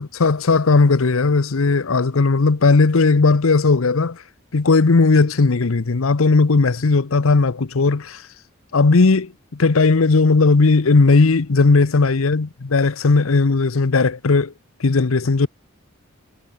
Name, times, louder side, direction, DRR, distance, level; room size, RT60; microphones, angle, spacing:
voice 1, 0.0-4.2 4.5-8.2 8.7-14.5 14.8-15.5, left 3 dB, 80° left, 0.8 m, -16 dB
head